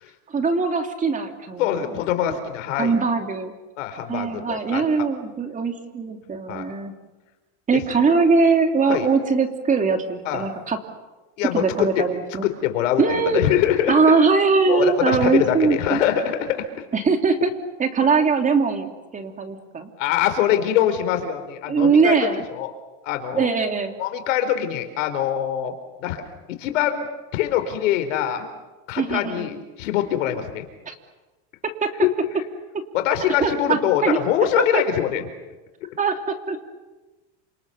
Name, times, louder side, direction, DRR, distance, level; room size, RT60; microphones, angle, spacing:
voice 1, 0.3-2.4 2.8-3.5 4.1-6.9 7.7-10.8 11.5-12.5 13.0-13.4 13.9-16.0 16.9-17.5 17.8-19.9 21.7-22.4 23.3-23.9 29.0-29.5 30.9-31.0 31.8-31.9 33.4-34.2 34.6-34.8 36.0-36.6, right 4 dB, 20° right, 5 dB, 2.8 m, -21 dB
voice 2, 1.6-2.9 3.8-4.8 6.5-6.7 8.9-9.1 10.3-10.5 11.4-12.0 12.4-14.1 14.7-16.6 20.0-22.1 22.5-22.7 23.0-23.5 24.0-25.7 26.0-26.2 26.5-28.5 28.9-30.6 32.0-32.1 32.9-35.2, left 11 dB, 80° left, 8 dB, 4.4 m, -23 dB
28.5 x 27.5 x 6.9 m, 1.2 s
supercardioid pair, 140°, 38 cm